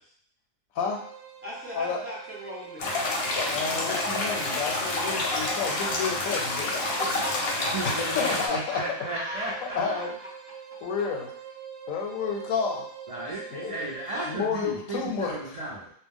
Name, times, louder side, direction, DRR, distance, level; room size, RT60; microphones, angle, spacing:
sound 1, 0.8-14.5, right 8 dB, 70° right, 0.8 m, -44 dB
voice 1, 1.4-3.2 7.0-10.0, equal, 15° left, -6 dB, 0.6 m, -38 dB
sound 2, 2.8-8.5, left 2 dB, 60° left, 0.7 m, -28 dB
voice 2, 3.5-7.0 7.8-9.0 9.7-10.1 10.8-11.3 11.9-12.9 13.5-13.8 14.2-15.4, left 5 dB, 80° left, 1 dB, 1.0 m, -30 dB
voice 3, 7.7-10.1 13.1-15.9, right 2 dB, 50° right, -6 dB, 0.4 m, -35 dB
2.4 x 2.2 x 3.5 m, 0.65 s
omnidirectional pair, 1.4 m